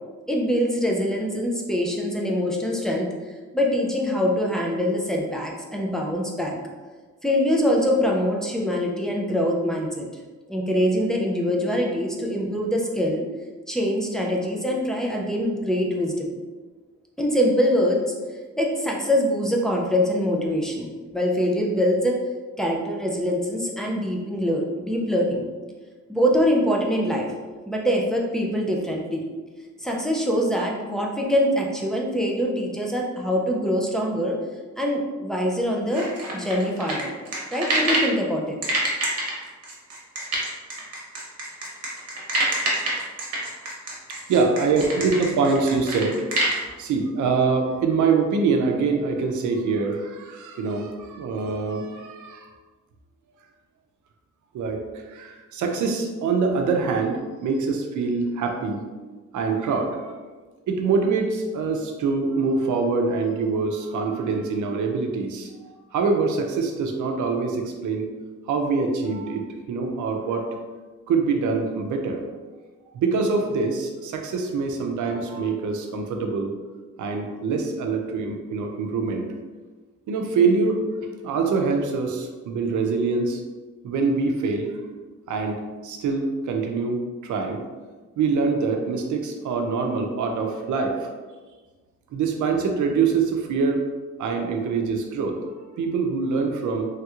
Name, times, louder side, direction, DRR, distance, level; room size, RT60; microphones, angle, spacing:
voice 1, 0.3-3.1 3.5-6.6 7.2-10.1 10.5-13.2 13.7-16.3 17.2-18.0 18.6-20.9 21.1-22.2 22.6-25.4 26.1-27.3 27.7-29.2 29.8-34.4 34.8-37.1 37.5-38.6, equal, ahead, -2 dB, 0.3 m, -24 dB
sound 1, 35.9-38.1 38.6-46.6, right 1 dB, 55° right, 0.9 m, -26 dB
voice 2, 44.3-46.2 46.8-52.5 54.5-58.8 59.3-59.9 60.7-65.5 65.9-68.1 68.5-70.5 71.1-72.2 72.9-76.5 77.0-79.3 80.1-80.8 81.2-83.4 83.8-84.7 85.3-87.6 88.2-91.1 92.1-93.8 94.2-95.4 95.8-96.9, right 4 dB, 75° right, 3 dB, 0.5 m, -24 dB
3.2 x 2.9 x 2.3 m, 1.3 s
wide cardioid pair, 160°, 30 cm